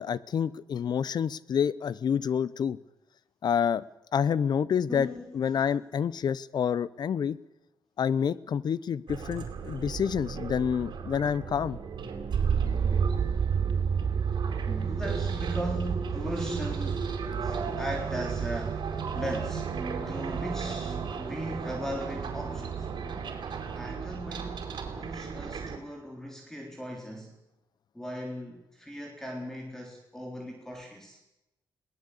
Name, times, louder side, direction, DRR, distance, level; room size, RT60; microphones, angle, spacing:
voice 1, 0.0-2.8 3.4-3.8 4.1-5.1 5.3-7.4 8.0-11.8, left 7 dB, 60° left, 19 dB, 0.9 m, -28 dB
voice 2, 4.9-5.6 14.7-17.1 17.4-18.9 19.1-19.7 20.1-22.9 23.7-24.7 25.0-27.4 27.9-31.2, equal, 5° left, 2 dB, 3.7 m, -38 dB
sound 1, 9.1-25.8, right 6 dB, 70° right, 4.8 m, -32 dB
22.0 x 18.5 x 8.5 m, 0.93 s
wide cardioid pair, 120°, 8 cm